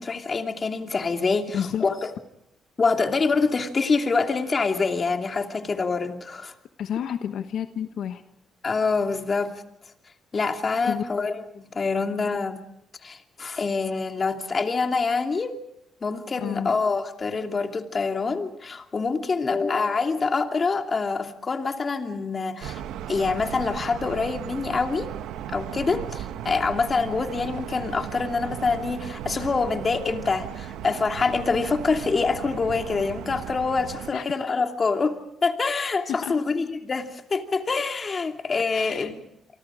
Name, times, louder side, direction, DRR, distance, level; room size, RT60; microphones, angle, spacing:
voice 1, 0.0-2.1 2.8-6.5 8.6-9.6 10.3-12.6 13.0-15.5 16.0-22.8 23.1-25.1 25.5-39.2, left 4 dB, 35° left, 5 dB, 2.8 m, -26 dB
voice 2, 1.5-1.8 6.8-8.2 10.8-11.0 16.4-16.7 34.1-34.2 36.1-36.4 38.7-39.1, left 9 dB, 75° left, 8 dB, 1.3 m, -30 dB
sound 1, 22.6-34.1, right 10 dB, 90° right, 1.3 m, -36 dB
29.0 x 24.0 x 5.0 m, 0.81 s
cardioid pair, 90°, 0 cm